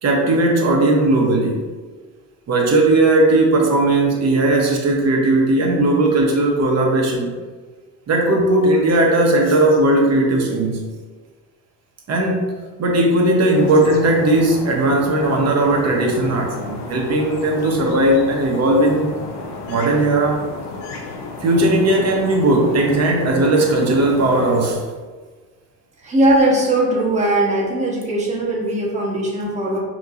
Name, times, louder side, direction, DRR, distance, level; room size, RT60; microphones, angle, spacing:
voice 1, 0.0-1.6 2.5-7.3 8.1-10.8 12.1-12.5 12.8-19.1 19.7-20.4 21.4-24.8, right 2 dB, 30° right, 0 dB, 1.0 m, -17 dB
sound 1, 13.5-24.7, left 3 dB, 60° left, 0.9 m, -33 dB
voice 2, 26.0-29.8, right 1 dB, 15° right, -4 dB, 1.2 m, -19 dB
4.3 x 3.0 x 2.6 m, 1.4 s
hypercardioid pair, 80°, 48 cm